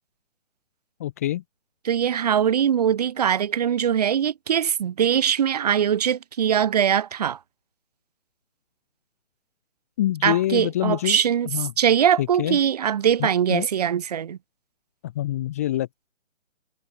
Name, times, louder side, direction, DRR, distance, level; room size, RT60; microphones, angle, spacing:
voice 1, 1.0-1.4 10.0-11.7 12.2-12.6 13.2-13.7 15.0-16.1, left 13 dB, 10° left, 1.1 m, -26 dB
voice 2, 1.8-7.4 10.2-11.5 11.8-14.4, right 9 dB, 30° right, 2.3 m, -22 dB
hypercardioid pair, 165°, 38 cm